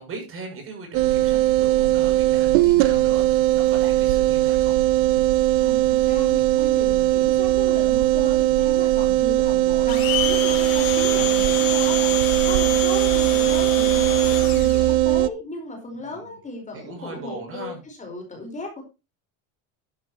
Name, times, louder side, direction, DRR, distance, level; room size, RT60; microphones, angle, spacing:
voice 1, 0.0-4.8 16.0-16.4 16.7-17.8, right 4 dB, 35° right, 3 dB, 7.1 m, -38 dB
sound 1, 0.9-15.3, right 15 dB, 90° right, 0.9 m, -19 dB
voice 2, 5.6-12.2 12.4-18.8, left 2 dB, 20° left, 2 dB, 4.7 m, -36 dB
Domestic sounds home sounds, 9.9-15.0, left 11 dB, 65° left, 4.3 m, -28 dB
12.0 x 11.5 x 3.0 m, 0.27 s
cardioid pair, 145°, 36 cm